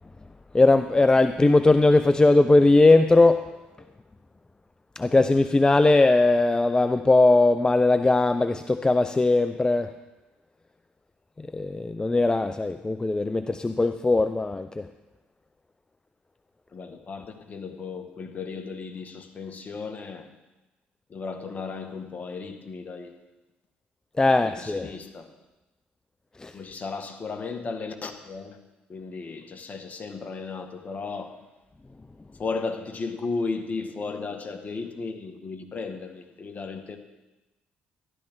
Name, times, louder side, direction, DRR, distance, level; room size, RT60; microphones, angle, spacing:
voice 1, 0.5-3.4 5.0-9.9 11.5-14.8 24.2-24.9 26.4-26.5, left 2 dB, 20° left, 10 dB, 0.5 m, -19 dB
voice 2, 16.7-20.3 21.1-23.2 24.3-25.3 26.5-28.6 28.9-31.3 32.4-37.0, left 4 dB, 40° left, 6 dB, 1.6 m, -35 dB
13.5 x 11.5 x 3.7 m, 1.1 s
supercardioid pair, 65°, 4 cm